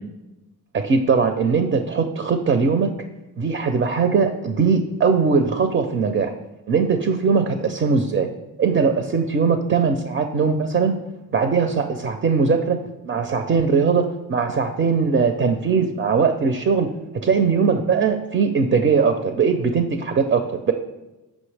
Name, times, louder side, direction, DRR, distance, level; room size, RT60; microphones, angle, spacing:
voice 1, 0.7-2.9 3.4-6.3 6.7-8.3 8.6-10.9 11.3-16.9 17.2-20.7, right 5 dB, 30° right, 7 dB, 0.4 m, -20 dB
6.2 x 5.2 x 3.3 m, 1.0 s
cardioid pair, 90°, 38 cm